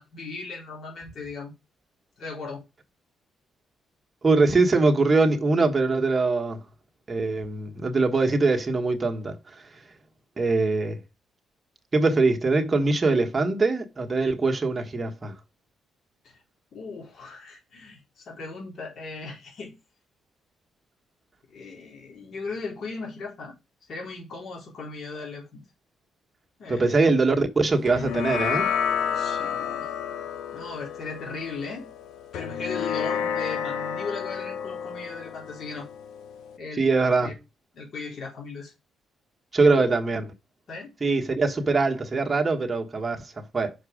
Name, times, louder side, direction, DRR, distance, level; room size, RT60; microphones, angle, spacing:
voice 1, 0.0-1.5 2.2-2.6 16.2-16.4 16.7-19.8 21.5-23.6 23.9-25.6 26.6-27.0 28.9-29.9 30.5-31.9 32.3-35.9 36.6-37.3 37.7-38.7 39.6-39.9 40.7-40.9, left 4 dB, 60° left, 3.7 m, -37 dB
voice 2, 4.2-6.6 7.1-9.4 10.4-11.0 11.9-15.3 26.7-28.7 36.7-37.3 39.5-40.2 41.0-43.7, right 3 dB, 25° right, 1.4 m, -22 dB
sound 1, 27.9-36.6, left 8 dB, 85° left, 0.7 m, -30 dB
6.1 x 4.6 x 4.9 m
cardioid pair, 90°, 0 cm